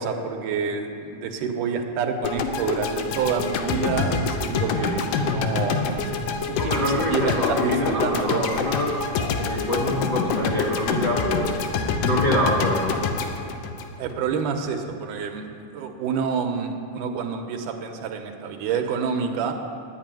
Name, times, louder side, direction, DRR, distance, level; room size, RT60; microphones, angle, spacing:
voice 1, 0.0-6.2 6.5-8.5 14.0-15.5 15.7-19.6, right 6 dB, 80° right, 5 dB, 2.5 m, -28 dB
sound 1, 2.2-14.5, left 5 dB, 80° left, 2.3 m, -26 dB
voice 2, 6.6-13.0, left 1 dB, 40° left, -4 dB, 1.3 m, -26 dB
10.5 x 8.3 x 9.0 m, 2.5 s
omnidirectional pair, 3.6 m